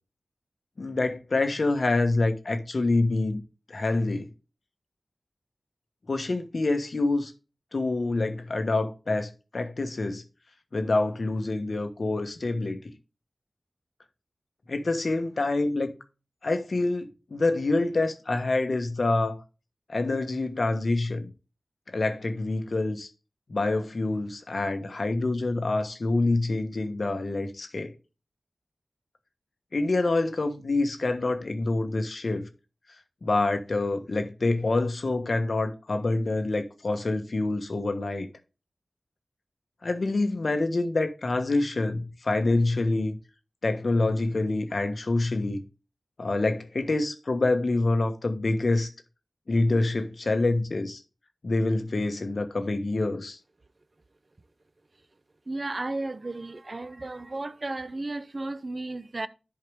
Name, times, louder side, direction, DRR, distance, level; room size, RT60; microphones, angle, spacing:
voice 1, 0.8-3.4 3.7-4.3 6.1-7.3 7.7-10.2 10.7-12.8 14.7-16.0 16.4-19.4 19.9-21.3 21.9-23.1 23.5-27.9 29.7-32.5 33.2-38.3 39.8-43.2 43.6-45.6 46.2-48.9 49.5-51.0 51.4-53.4, left 2 dB, 65° left, 1.3 m, -26 dB
voice 2, 55.5-59.3, right 2 dB, 45° right, 0.6 m, -34 dB
11.0 x 4.8 x 3.6 m
cardioid pair, 50°, 0 cm